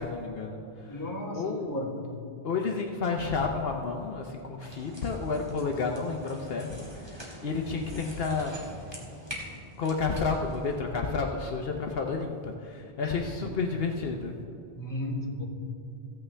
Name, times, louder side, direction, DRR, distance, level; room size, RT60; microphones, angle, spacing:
voice 1, 0.0-0.9 1.3-1.7 2.4-8.7 9.8-14.3, left 4 dB, 65° left, 2 dB, 0.9 m, -31 dB
voice 2, 0.9-2.2 13.0-13.6 14.8-15.4, left 1 dB, 20° left, -1 dB, 1.4 m, -35 dB
sound 1, 4.6-10.8, equal, 25° right, 1.8 m, -44 dB
15.5 x 8.9 x 3.3 m, 2.5 s
omnidirectional pair, 1.1 m